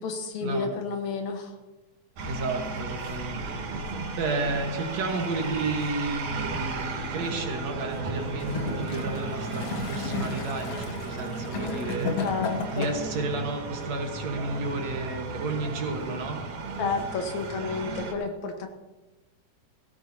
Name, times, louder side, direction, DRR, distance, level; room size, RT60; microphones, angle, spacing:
voice 1, 0.0-1.5 12.2-12.9 16.8-18.7, left 4 dB, 70° left, 4 dB, 2.7 m, -31 dB
voice 2, 2.2-3.6 4.2-12.1 12.7-16.4, right 2 dB, 65° right, 3 dB, 2.6 m, -32 dB
sound 1, 2.2-18.1, right 3 dB, 85° right, 2.9 m, -34 dB
Gurgling / Toilet flush, 8.3-13.2 14.0-14.1, left 5 dB, 55° left, 2.3 m, -34 dB
17.0 x 16.0 x 2.9 m, 1.1 s
omnidirectional pair, 3.4 m